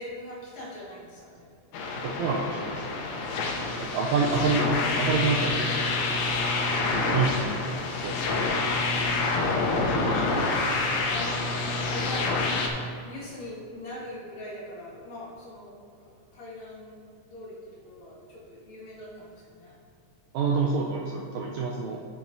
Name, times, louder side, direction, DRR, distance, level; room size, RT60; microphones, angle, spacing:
voice 1, 0.0-1.5 3.5-4.2 6.9-7.3 11.0-12.3 13.0-15.8 16.3-17.0 17.3-17.6 17.8-19.7, left 1 dB, 60° left, -7 dB, 3.1 m, -42 dB
sound 1, 1.7-12.7, left 3 dB, 75° left, 2.1 m, -27 dB
voice 2, 2.0-2.7 3.9-4.6 5.0-5.7 6.9-7.5 7.9-8.2 9.7-10.5 20.3-22.0, right 4 dB, 85° right, -1 dB, 1.7 m, -27 dB
9.1 x 7.5 x 2.7 m, 2.4 s
omnidirectional pair, 3.8 m